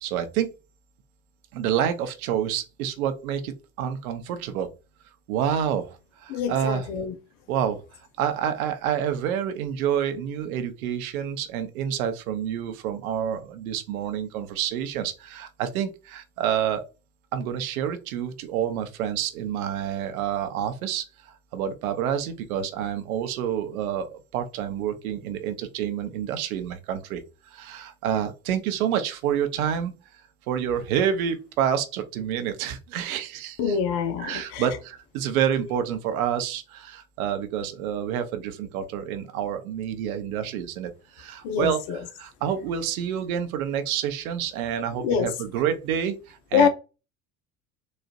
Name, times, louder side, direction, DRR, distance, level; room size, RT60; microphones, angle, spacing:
voice 1, 0.0-0.5 1.5-4.7 5.3-6.9 7.5-7.8 8.2-16.8 17.3-27.2 27.5-30.0 30.5-33.8 34.2-46.7, right 9 dB, 70° right, 0.8 m, -28 dB
voice 2, 6.3-7.2 33.6-34.6 41.4-42.0 45.0-45.3 46.5-46.7, left 6 dB, 60° left, 0.9 m, -24 dB
4.1 x 2.4 x 2.4 m
hypercardioid pair, 70°, 44 cm